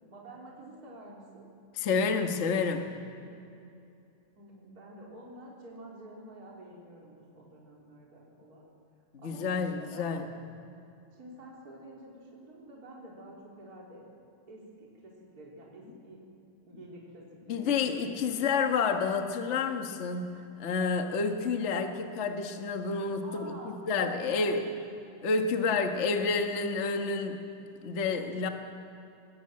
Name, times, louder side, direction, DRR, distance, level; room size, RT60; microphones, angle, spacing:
voice 1, 0.1-1.5 4.4-8.7 9.2-10.3 11.2-14.0 14.5-16.2 16.7-18.5 23.2-24.6, right 1 dB, 25° right, -3 dB, 4.1 m, -49 dB
voice 2, 1.8-2.8 9.1-10.2 17.5-20.3 20.6-24.7 25.2-27.4 27.8-28.5, left 4 dB, 80° left, 5 dB, 0.6 m, -29 dB
21.5 x 18.5 x 8.7 m, 2.7 s
omnidirectional pair, 3.8 m